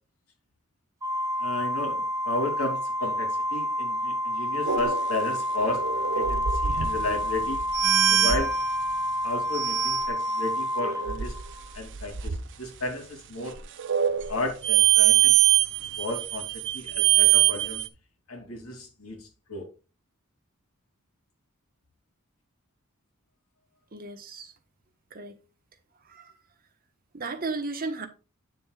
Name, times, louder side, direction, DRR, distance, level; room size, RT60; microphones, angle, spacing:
Organ, 1.0-11.8, equal, 15° right, 0.7 m, -29 dB
voice 1, 1.4-5.8 6.1-7.6 8.1-8.5 9.2-11.3 11.7-13.6 14.3-15.4 16.0-17.8 18.3-19.7, left 2 dB, 85° left, 2.7 m, -33 dB
sound 1, 4.7-8.7 9.5-10.1 10.8-12.4 13.6-17.9, right 11 dB, 60° right, 0.7 m, -24 dB
voice 2, 23.9-24.5 25.1-25.4 26.0-26.3 27.1-28.1, right 3 dB, 45° right, 1.2 m, -34 dB
9.2 x 7.0 x 2.3 m
head